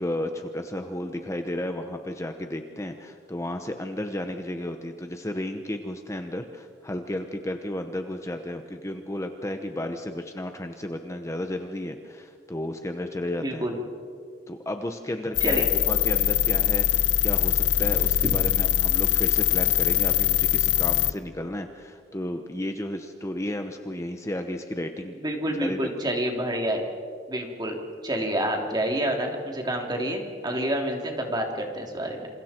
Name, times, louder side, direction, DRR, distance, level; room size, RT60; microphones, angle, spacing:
voice 1, 0.0-13.7 14.5-25.2 25.5-25.8, left 1 dB, 15° left, 6 dB, 1.0 m, -33 dB
voice 2, 13.4-13.8 15.4-15.6 25.2-26.8 27.3-27.8 28.0-32.3, right 1 dB, 25° right, 1 dB, 3.3 m, -28 dB
sound 1, 15.3-21.1, left 12 dB, 75° left, 0.8 m, -22 dB
28.0 x 28.0 x 4.5 m, 2.2 s
head